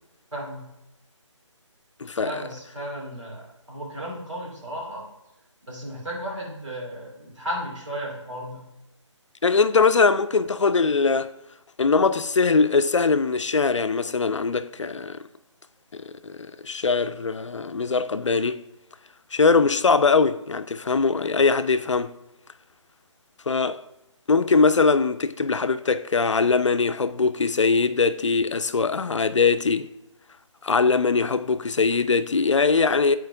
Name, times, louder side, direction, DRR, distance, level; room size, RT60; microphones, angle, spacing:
voice 1, 0.3-0.7 2.2-5.1 5.7-8.7, equal, 70° right, 2.5 m, -34 dB
voice 2, 2.0-2.3 9.4-11.3 11.8-15.2 15.9-16.4 16.6-18.6 19.3-22.1 23.5-23.8 24.3-29.9 30.6-33.2, left 4 dB, 70° left, 0.4 m, -21 dB
9.3 x 4.5 x 2.6 m
figure-of-eight pair, 150°, 16 cm